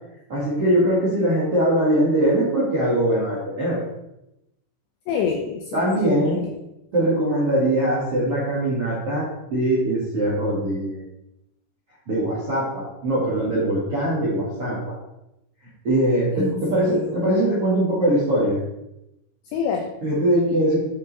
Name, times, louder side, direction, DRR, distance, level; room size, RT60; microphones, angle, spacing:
voice 1, 0.3-3.8 5.7-6.4 6.9-11.0 12.1-14.9 15.8-18.6 20.0-20.9, right 1 dB, 65° right, -8 dB, 1.4 m, -21 dB
voice 2, 5.1-6.5 16.4-17.2 19.5-19.9, left 6 dB, 85° left, 3 dB, 2.5 m, -27 dB
9.6 x 5.2 x 4.1 m, 0.88 s
omnidirectional pair, 5.9 m